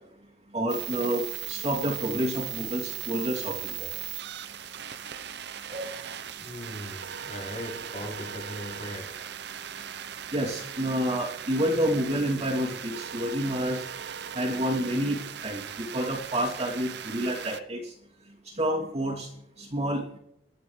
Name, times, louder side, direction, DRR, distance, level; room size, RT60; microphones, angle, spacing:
voice 1, 0.5-3.9 5.7-5.9 10.3-13.8 14.3-17.9 18.5-19.3 19.6-20.1, equal, 35° right, -2 dB, 2.8 m, -29 dB
sound 1, 0.7-17.6, right 9 dB, 60° right, 0.8 m, -38 dB
voice 2, 6.4-9.3, equal, 40° left, 0 dB, 3.3 m, -39 dB
24.5 x 11.0 x 3.3 m, 0.79 s
head